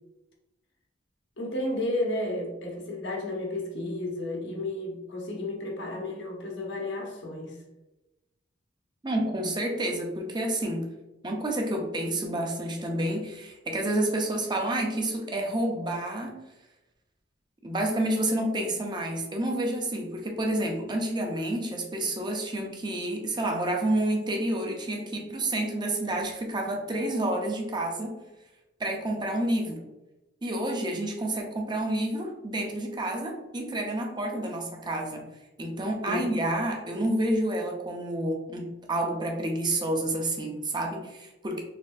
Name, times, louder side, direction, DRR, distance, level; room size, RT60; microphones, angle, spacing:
voice 1, 1.4-7.6 36.1-36.3, left 1 dB, 80° left, 0 dB, 1.0 m, -32 dB
voice 2, 9.0-10.8 11.2-16.4 17.6-28.2 28.8-29.9 30.4-35.2 35.6-41.6, right 1 dB, 25° right, 1 dB, 0.7 m, -29 dB
4.1 x 3.1 x 2.6 m, 1.0 s
head